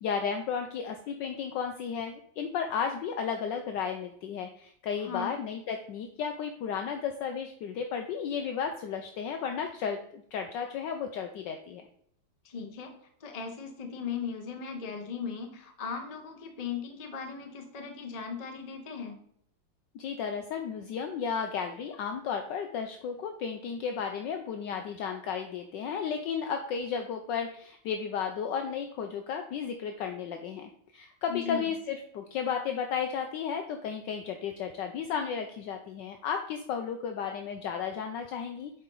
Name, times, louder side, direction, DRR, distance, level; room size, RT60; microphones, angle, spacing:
voice 1, 0.0-11.9 19.9-38.7, left 6 dB, 70° left, 5 dB, 1.2 m, -33 dB
voice 2, 5.0-5.3 12.4-12.9 13.2-19.2 31.3-31.7, left 6 dB, 40° left, 4 dB, 0.5 m, -38 dB
8.0 x 4.3 x 3.8 m, 0.67 s
omnidirectional pair, 2.2 m